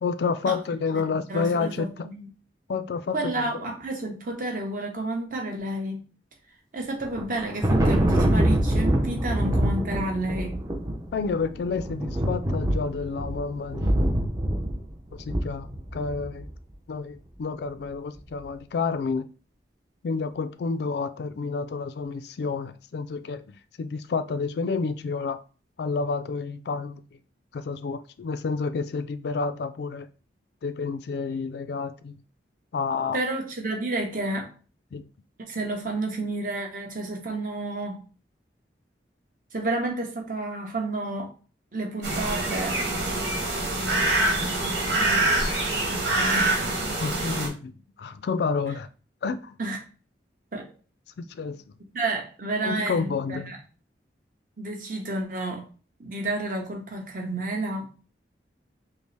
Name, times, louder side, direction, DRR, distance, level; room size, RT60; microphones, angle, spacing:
voice 1, 0.0-2.1 2.7-3.6 11.1-14.0 15.1-15.7 15.9-16.5 16.9-19.3 20.0-25.4 25.8-27.0 27.5-30.1 30.6-32.2 32.7-33.2 34.9-35.1 44.4-44.6 47.0-47.7 48.0-48.9 49.2-49.6 51.2-51.6 52.6-53.6, left 4 dB, 65° left, 0.3 m, -29 dB
voice 2, 1.3-2.3 3.1-6.0 6.7-10.6 33.1-34.5 35.5-38.0 39.5-41.3 41.7-42.8 45.9-46.7 49.6-49.8 50.5-50.7 51.9-53.6 54.6-55.7 56.0-57.9, right 2 dB, 50° right, 1.0 m, -30 dB
Thunder, 7.0-16.4, right 1 dB, 20° right, 0.6 m, -25 dB
sound 1, 42.0-47.5, right 2 dB, 75° right, 1.4 m, -25 dB
5.1 x 2.0 x 3.3 m
head